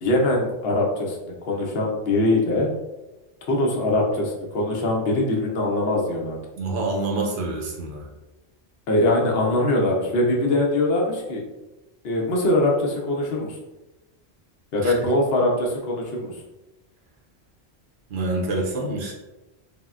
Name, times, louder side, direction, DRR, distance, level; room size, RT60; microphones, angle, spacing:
voice 1, 0.0-2.7 3.5-6.4 8.9-11.4 12.0-13.6 14.7-16.3, left 1 dB, 70° left, -1 dB, 0.9 m, -22 dB
voice 2, 6.6-8.1 14.8-14.9 18.1-19.1, right 2 dB, 60° right, -1 dB, 0.7 m, -27 dB
3.5 x 2.1 x 2.3 m, 1.0 s
omnidirectional pair, 1.1 m